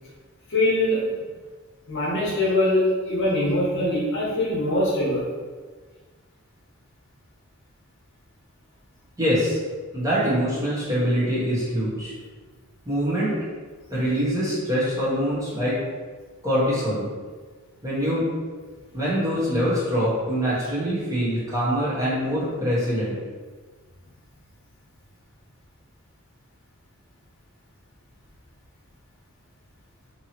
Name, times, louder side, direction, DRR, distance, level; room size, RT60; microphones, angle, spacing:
voice 1, 0.5-1.2 1.9-5.3, left 1 dB, 55° left, -5 dB, 0.8 m, -23 dB
voice 2, 9.2-9.6 9.9-12.1 12.9-13.3 13.9-15.8 16.4-17.1 17.8-18.3 18.9-23.1, equal, 15° right, -9 dB, 0.9 m, -24 dB
2.8 x 2.7 x 2.9 m, 1.4 s
head